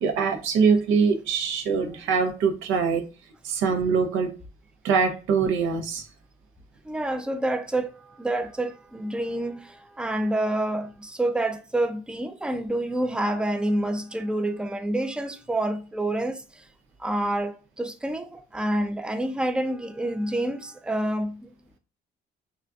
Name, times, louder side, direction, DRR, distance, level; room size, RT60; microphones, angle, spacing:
voice 1, 0.0-3.0 3.4-4.3 4.8-6.1, right 5 dB, 85° right, 0.6 m, -23 dB
voice 2, 6.8-16.7 17.0-21.5, right 1 dB, 5° right, 0.3 m, -28 dB
3.7 x 2.4 x 2.3 m
cardioid pair, 90°, 20 cm